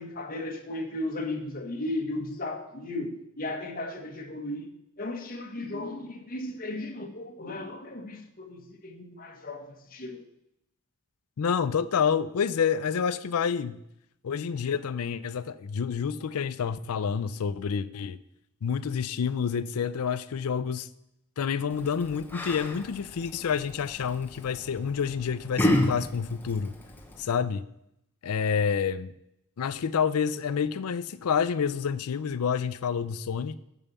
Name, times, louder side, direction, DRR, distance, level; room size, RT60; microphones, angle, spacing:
voice 1, 0.0-4.7 5.0-10.2, left 2 dB, 40° left, 1.2 m, -35 dB
voice 2, 11.4-13.8 14.2-18.2 18.6-20.9 21.4-26.7 27.2-27.6 28.2-29.1 29.6-33.6, left 6 dB, 80° left, 0.4 m, -28 dB
Yell, 21.7-27.2, left 1 dB, 10° left, 0.9 m, -32 dB
7.2 x 5.4 x 6.7 m
head